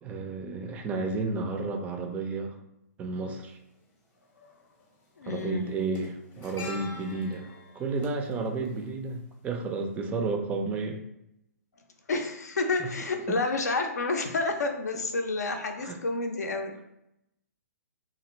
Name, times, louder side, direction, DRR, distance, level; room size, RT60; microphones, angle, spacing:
voice 1, 0.0-2.6 3.0-3.6 5.3-7.5 7.7-11.0 12.8-12.9 13.1-13.4 15.8-16.0, right 3 dB, 15° right, 4 dB, 0.3 m, -32 dB
sound 1, 3.4-3.5 4.8-5.0 5.3-9.6 9.9-10.0, left 2 dB, 20° left, 0.7 m, -46 dB
voice 2, 5.2-5.8 12.1-16.7, left 3 dB, 80° left, 5 dB, 0.5 m, -29 dB
2.9 x 2.5 x 2.9 m, 0.84 s
hypercardioid pair, 135°, 9 cm